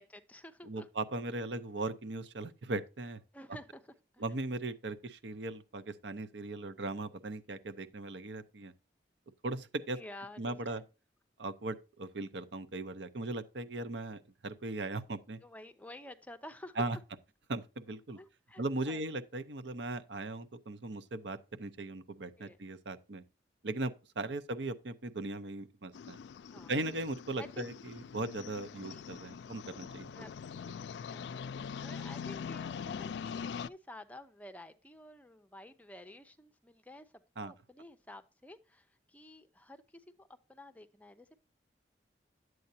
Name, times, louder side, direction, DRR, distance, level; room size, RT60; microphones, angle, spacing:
voice 1, 0.0-0.9 3.3-4.4 9.9-10.9 15.4-16.8 18.2-19.0 22.4-22.6 26.5-26.7 27.4-27.6 28.8-29.0 30.1-30.7 31.1-33.4 33.6-41.4, left 1 dB, 10° left, 0.6 m, -51 dB
voice 2, 0.7-3.2 4.2-8.7 9.4-10.0 10.4-10.8 11.4-15.4 16.8-17.0 17.5-18.2 18.6-23.2 23.6-26.2 26.7-30.1 37.4-37.5, right 2 dB, 80° right, 0.8 m, -38 dB
sound 1, 25.9-33.7, left 6 dB, 80° left, 0.3 m, -43 dB
10.5 x 7.9 x 2.7 m
head